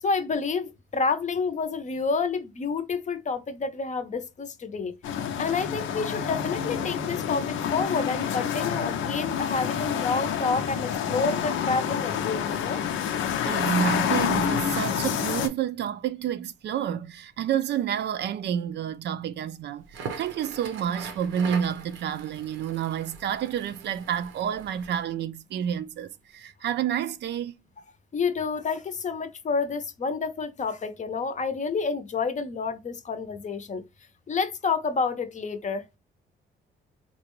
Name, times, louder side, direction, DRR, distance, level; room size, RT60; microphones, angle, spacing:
voice 1, 0.0-4.9 5.4-12.8 28.1-33.8 34.3-36.0, left 4 dB, 40° left, 0.6 m, -29 dB
sound 1, 5.0-15.5, left 8 dB, 80° left, 0.5 m, -28 dB
voice 2, 13.4-27.5, right 9 dB, 60° right, 0.4 m, -29 dB
Crackle, 19.8-25.1, right 6 dB, 80° right, 0.8 m, -41 dB
3.8 x 2.2 x 3.0 m
cardioid pair, 90°, 20 cm